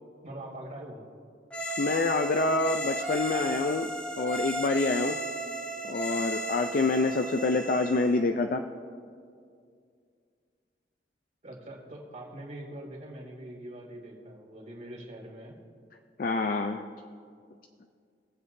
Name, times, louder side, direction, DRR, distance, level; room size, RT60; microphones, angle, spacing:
voice 1, 0.2-1.0 7.3-7.5 11.4-15.6, right 1 dB, 45° right, -1 dB, 2.5 m, -43 dB
sound 1, 1.5-8.2, right 1 dB, 5° left, 1.1 m, -34 dB
voice 2, 1.8-5.2 5.8-8.6 16.2-16.9, left 3 dB, 50° left, 6 dB, 0.4 m, -27 dB
22.5 x 7.8 x 2.7 m, 2.2 s
head